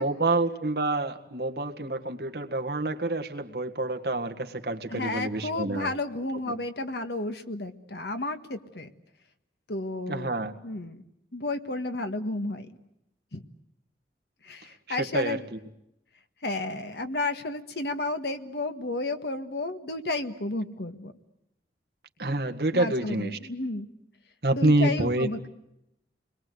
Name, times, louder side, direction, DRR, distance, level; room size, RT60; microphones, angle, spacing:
voice 1, 0.0-5.9 10.1-10.5 14.9-15.6 22.2-23.4 24.4-25.3, right 2 dB, 60° right, 5 dB, 1.8 m, -27 dB
voice 2, 4.9-8.9 9.7-11.0 11.3-12.7 13.3-13.4 14.4-15.4 16.4-21.1 22.7-23.9 24.5-25.5, left 2 dB, 70° left, 8 dB, 1.7 m, -32 dB
29.0 x 22.0 x 8.0 m, 0.84 s
head